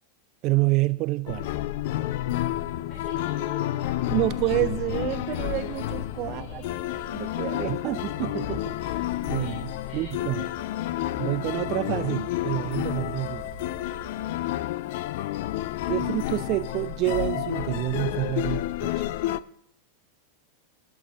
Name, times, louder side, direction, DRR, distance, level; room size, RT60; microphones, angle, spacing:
voice 1, 0.4-1.5 4.1-6.6 7.1-10.4 11.2-13.5 15.9-19.2, right 19 dB, 40° right, 0.3 m, -28 dB
sound 1, 1.3-19.4, left 14 dB, 50° left, 0.4 m, -30 dB
voice 2, 2.9-4.1 6.2-7.5 9.4-9.6 9.8-10.1, left 4 dB, 20° left, 3.0 m, -44 dB
sound 2, 4.1-14.5, right 6 dB, 25° right, 2.6 m, -48 dB
20.5 x 8.1 x 3.8 m
figure-of-eight pair, 90°, 0 cm